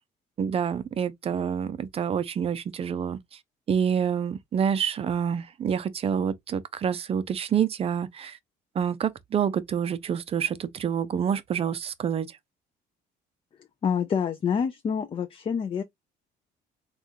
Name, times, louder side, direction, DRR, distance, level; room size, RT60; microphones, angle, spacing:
voice 1, 0.4-3.2 3.7-8.4 8.8-12.3, right 8 dB, 35° right, 0.4 m, -27 dB
voice 2, 13.8-15.8, left 7 dB, 30° left, 0.4 m, -27 dB
3.6 x 2.3 x 2.5 m
cardioid pair, 110°, 17 cm